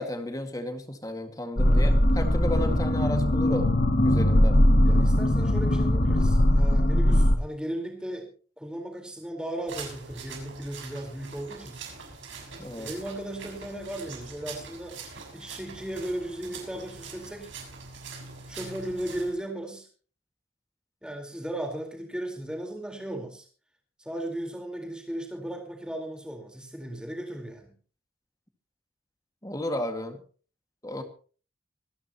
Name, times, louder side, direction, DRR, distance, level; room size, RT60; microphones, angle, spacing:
voice 1, 0.0-3.7 4.0-4.6 12.6-12.9 29.4-30.2 30.8-31.0, left 1 dB, 20° left, 6 dB, 1.9 m, -33 dB
sound 1, 1.6-7.4, left 1 dB, 45° left, 1.6 m, -21 dB
voice 2, 4.8-8.3 8.6-11.8 12.8-15.0 15.3-17.5 18.5-19.9 21.0-23.4 24.0-27.7, right 1 dB, 5° right, 2 dB, 4.1 m, -36 dB
sound 2, 9.7-19.3, right 4 dB, 75° right, 6.4 m, -43 dB
25.5 x 11.5 x 3.0 m, 0.40 s
head